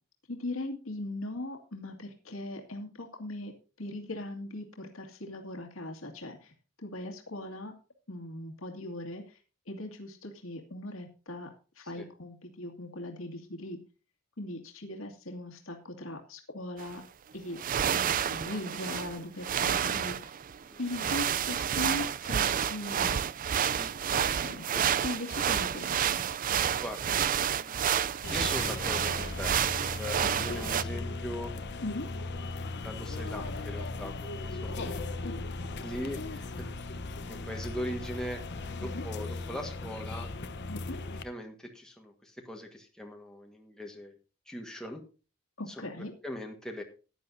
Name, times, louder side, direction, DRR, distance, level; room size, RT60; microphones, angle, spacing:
voice 1, 0.3-3.5 3.8-6.5 6.8-7.7 8.1-9.2 9.7-11.5 11.8-13.8 14.4-17.0 17.3-17.6 17.9-20.4 20.8-23.2 24.2-26.2 30.2-30.5 31.8-32.1 34.6-35.3 38.8-39.0 40.7-41.0 45.6-46.1, left 2 dB, 75° left, 2 dB, 2.3 m, -39 dB
sound 1, 16.8-16.9 17.6-30.8, right 9 dB, 40° right, 0.4 m, -30 dB
voice 2, 23.7-24.2 26.8-29.6 30.0-31.5 32.8-35.0 35.8-36.7 37.2-40.3 41.2-44.2 44.5-45.0 45.7-45.9 46.2-46.8, equal, 5° left, 1 dB, 1.5 m, -40 dB
sound 2, 28.2-41.2, left 3 dB, 55° left, 1.0 m, -37 dB
15.5 x 10.5 x 2.7 m, 0.34 s
head